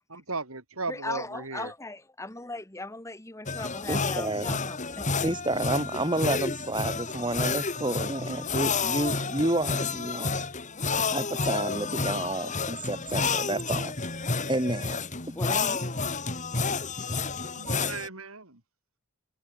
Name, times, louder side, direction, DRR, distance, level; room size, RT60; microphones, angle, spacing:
voice 1, 0.3-1.7 17.6-18.6, right 3 dB, 80° right, 4.6 m, -36 dB
voice 2, 0.9-5.2 15.3-15.9, left 2 dB, 15° left, 1.6 m, -38 dB
sound 1, 3.5-18.1, left 4 dB, 35° left, 2.9 m, -30 dB
voice 3, 3.9-4.6 5.2-10.4 11.1-13.9 14.5-15.4, right 1 dB, 20° right, 2.6 m, -30 dB
head